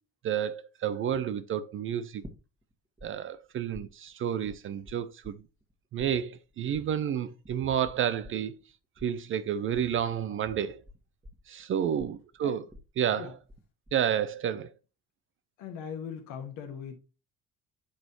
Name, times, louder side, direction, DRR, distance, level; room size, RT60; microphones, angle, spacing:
voice 1, 0.2-2.2 3.0-5.4 5.9-8.5 9.0-10.8 11.5-12.6 13.0-13.3 13.9-14.7, right 9 dB, 30° right, 0.5 m, -30 dB
sound 1, 2.2-3.1 3.3-5.7 6.0-13.6 13.9-14.4, left 1 dB, 15° right, 1.7 m, -50 dB
voice 2, 15.6-17.0, left 7 dB, 55° left, 1.6 m, -40 dB
11.0 x 4.0 x 3.0 m
figure-of-eight pair, 50°, 39 cm